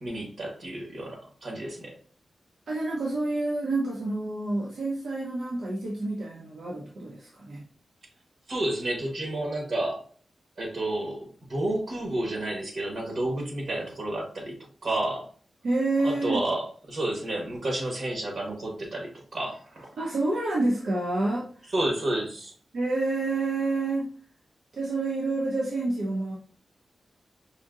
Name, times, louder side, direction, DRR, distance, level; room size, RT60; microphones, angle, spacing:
voice 1, 0.0-2.0 8.5-10.0 10.6-15.3 16.0-19.9 21.7-22.5, right 1 dB, 55° right, 1 dB, 1.2 m, -31 dB
voice 2, 2.7-7.6 15.6-16.4 20.0-21.7 22.7-24.1 24.7-26.4, right 2 dB, 75° right, -3 dB, 0.8 m, -28 dB
5.1 x 2.7 x 2.5 m, 0.43 s
wide cardioid pair, 175°, 0 cm